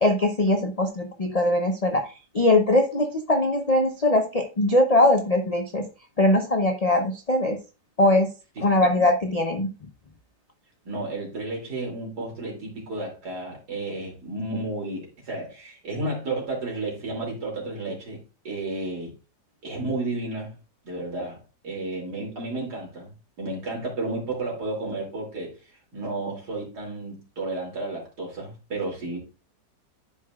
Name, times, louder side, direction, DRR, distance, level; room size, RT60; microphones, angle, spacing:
voice 1, 0.0-5.8 6.2-7.6 8.0-8.3 8.6-9.7, left 1 dB, 65° left, 3 dB, 0.3 m, -21 dB
voice 2, 10.8-19.1 19.6-20.5 20.8-23.1 23.4-25.5 25.9-29.2, right 2 dB, 65° right, -1 dB, 3.4 m, -32 dB
11.5 x 4.8 x 2.4 m, 0.31 s
omnidirectional pair, 1.9 m